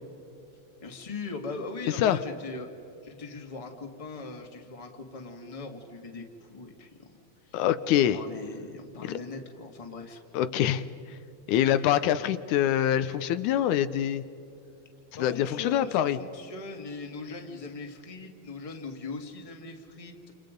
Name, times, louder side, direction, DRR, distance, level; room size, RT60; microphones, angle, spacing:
voice 1, 0.8-2.7 3.0-7.1 7.4-7.6 7.9-10.2 11.6-12.1 15.1-20.3, left 3 dB, 15° left, 3 dB, 1.6 m, -40 dB
voice 2, 7.5-8.2 9.0-9.2 10.3-10.8 11.5-14.2 15.2-16.2, left 11 dB, 80° left, 12 dB, 2.1 m, -25 dB
30.0 x 28.0 x 5.2 m, 2.8 s
omnidirectional pair, 3.5 m